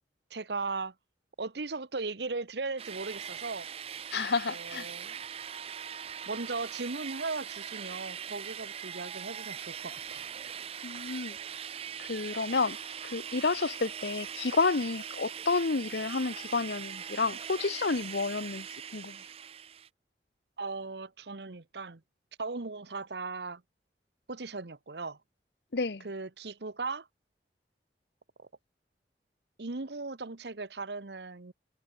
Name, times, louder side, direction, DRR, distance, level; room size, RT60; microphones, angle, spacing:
voice 1, 0.3-0.9 1.4-3.7 4.5-5.2 6.3-10.3 20.6-22.0 22.4-23.6 24.3-25.2 26.0-27.1 28.4-28.5 29.6-31.5, right 3 dB, 70° right, 1.1 m, -37 dB
sound 1, 2.8-19.9, right 8 dB, 35° right, 0.4 m, -41 dB
voice 2, 4.1-4.9 10.8-11.4 12.0-19.2 25.7-26.1, left 4 dB, 70° left, 0.9 m, -30 dB
head